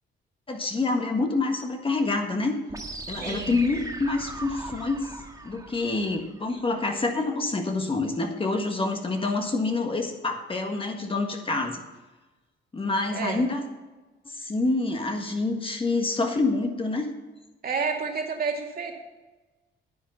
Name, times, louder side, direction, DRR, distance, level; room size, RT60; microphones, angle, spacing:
voice 1, 0.5-2.5 3.1-5.0 5.4-11.8 12.7-13.6 14.2-17.1, left 3 dB, 25° left, 4 dB, 1.6 m, -27 dB
sound 1, 2.7-6.7, right 2 dB, 15° right, 1.6 m, -39 dB
voice 2, 3.2-3.5 13.1-13.4 17.6-18.9, right 5 dB, 50° right, 1 dB, 2.4 m, -30 dB
10.0 x 9.1 x 5.7 m, 1.2 s
cardioid pair, 90°, 20 cm